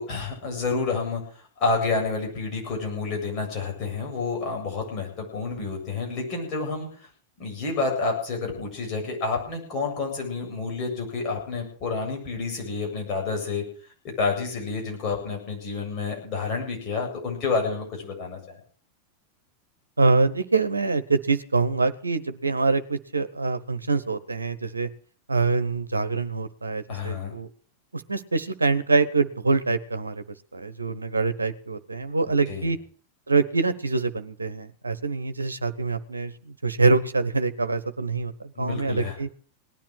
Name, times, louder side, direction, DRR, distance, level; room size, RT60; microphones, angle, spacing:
voice 1, 0.0-7.1 7.4-13.6 14.0-18.6 26.9-27.3 32.5-32.7 38.6-39.2, left 4 dB, 35° left, 0 dB, 7.6 m, -29 dB
voice 2, 20.0-24.9 25.3-27.5 27.9-30.2 30.5-32.8 33.3-38.3 38.6-39.3, right 3 dB, 80° right, 11 dB, 1.1 m, -25 dB
18.5 x 10.5 x 6.4 m, 0.43 s
figure-of-eight pair, 90°, 0 cm